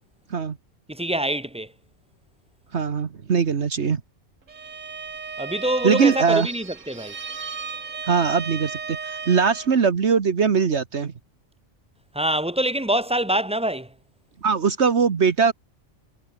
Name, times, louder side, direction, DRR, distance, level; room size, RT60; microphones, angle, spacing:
voice 1, 0.9-1.7 5.4-7.1 12.1-13.9, right 1 dB, 5° right, 1.1 m, -25 dB
voice 2, 2.7-4.0 5.8-6.5 8.0-11.1 14.4-15.5, right 6 dB, 60° right, 1.6 m, -21 dB
Bowed string instrument, 4.5-9.8, right 5 dB, 80° right, 2.1 m, -35 dB
omnidirectional pair, 1.3 m